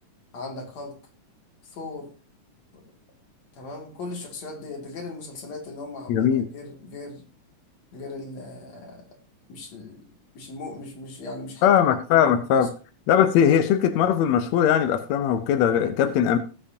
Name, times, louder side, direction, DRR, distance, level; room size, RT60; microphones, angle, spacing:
voice 1, 0.3-1.0 1.7-2.1 3.5-7.2 7.9-9.0 9.5-11.7 12.1-12.7 16.0-16.2, left 2 dB, 55° left, 1 dB, 3.6 m, -38 dB
voice 2, 6.1-6.5 11.6-12.7 13.1-16.4, left 9 dB, 75° left, 9 dB, 1.7 m, -20 dB
18.0 x 6.8 x 2.8 m, 0.35 s
omnidirectional pair, 3.8 m